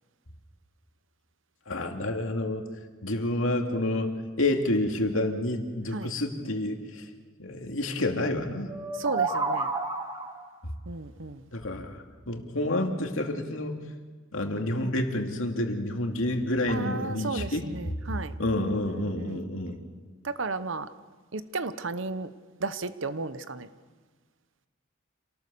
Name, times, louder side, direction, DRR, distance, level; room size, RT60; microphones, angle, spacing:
voice 1, 1.7-2.6 3.0-4.1 4.4-7.1 7.4-8.7 10.6-10.7 11.5-13.8 14.3-17.6 18.4-19.8, left 1 dB, 75° left, 3 dB, 2.5 m, -29 dB
sound 1, 8.7-10.5, right 3 dB, 20° right, 2.2 m, -30 dB
voice 2, 8.9-9.7 10.9-11.4 16.7-19.4 20.2-20.9 21.3-22.3 22.6-23.7, right 3 dB, 70° right, 12 dB, 0.9 m, -34 dB
27.5 x 18.5 x 6.8 m, 1.4 s
head